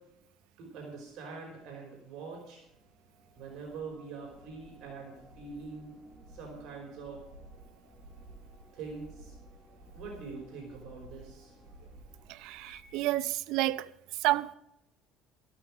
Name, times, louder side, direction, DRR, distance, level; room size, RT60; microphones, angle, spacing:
voice 1, 0.6-2.6 3.4-6.0 6.3-7.2 8.7-9.3 9.9-11.5, right 4 dB, 60° right, 4.8 m, -44 dB
sound 1, 2.7-13.2, right 1 dB, 15° right, 3.9 m, -54 dB
voice 2, 12.3-13.9 14.2-14.5, right 16 dB, 75° right, 0.6 m, -30 dB
14.0 x 13.5 x 4.9 m
cardioid pair, 150°, 0 cm